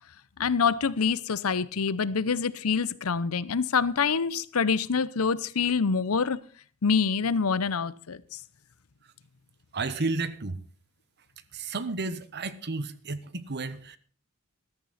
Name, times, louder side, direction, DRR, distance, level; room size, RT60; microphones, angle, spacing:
voice 1, 0.4-6.4 6.8-8.4, left 5 dB, 75° left, 0.7 m, -26 dB
voice 2, 9.7-10.6 11.5-14.0, right 3 dB, 50° right, 1.1 m, -32 dB
14.5 x 13.5 x 4.2 m
head